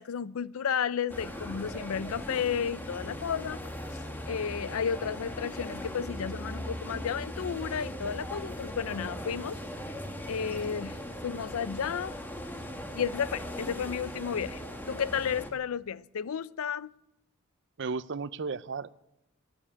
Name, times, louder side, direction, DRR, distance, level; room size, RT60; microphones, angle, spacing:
voice 1, 0.0-3.6 4.3-9.6 10.3-12.2 12.9-14.6 14.9-16.9, left 7 dB, 80° left, 0.5 m, -32 dB
sound 1, 1.1-15.5, equal, 10° left, 1.3 m, -39 dB
voice 2, 17.8-18.9, right 4 dB, 55° right, 0.5 m, -34 dB
15.0 x 9.4 x 8.6 m
head